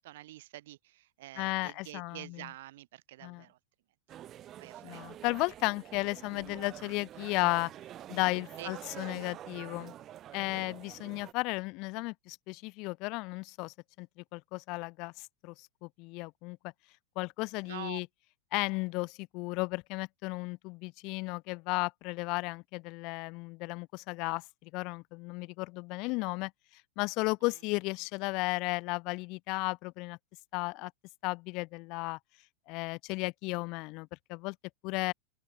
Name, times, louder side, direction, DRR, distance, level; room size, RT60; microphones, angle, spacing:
voice 1, 0.0-3.6 4.6-5.1 8.6-8.7 17.6-18.0, right 16 dB, 55° right, 1.8 m, -47 dB
voice 2, 1.3-2.5 3.2-3.4 4.8-7.7 8.1-9.9 10.3-14.1 14.3-16.6 17.2-18.1 18.5-26.5 27.0-30.2 30.5-30.9 31.2-32.2 32.7-34.6 34.8-35.1, left 26 dB, 40° left, 1.0 m, -34 dB
sound 1, 4.1-11.3, right 12 dB, 30° right, 1.2 m, -47 dB
open air
figure-of-eight pair, 90°, 0 cm